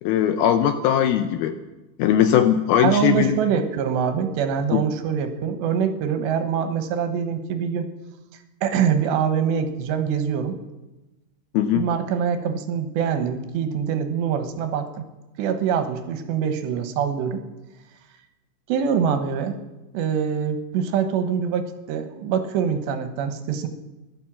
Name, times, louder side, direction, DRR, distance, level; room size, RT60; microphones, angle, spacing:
voice 1, 0.0-1.6 2.0-3.4 4.7-4.8 11.5-11.9, left 10 dB, 80° left, 9 dB, 2.3 m, -19 dB
voice 2, 2.8-7.9 8.6-10.6 11.8-15.0 15.4-17.4 18.7-19.6 19.9-23.7, right 7 dB, 80° right, 8 dB, 3.3 m, -24 dB
15.5 x 12.0 x 7.4 m, 1.1 s
omnidirectional pair, 5.0 m